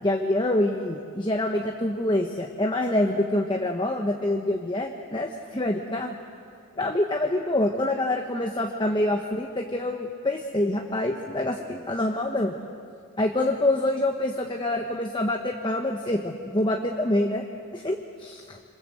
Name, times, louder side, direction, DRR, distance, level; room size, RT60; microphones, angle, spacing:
voice 1, 0.0-6.1 6.8-12.5 13.2-17.4 17.7-18.6, left 1 dB, 20° left, 2 dB, 1.2 m, -26 dB
27.5 x 27.0 x 7.8 m, 2.4 s
head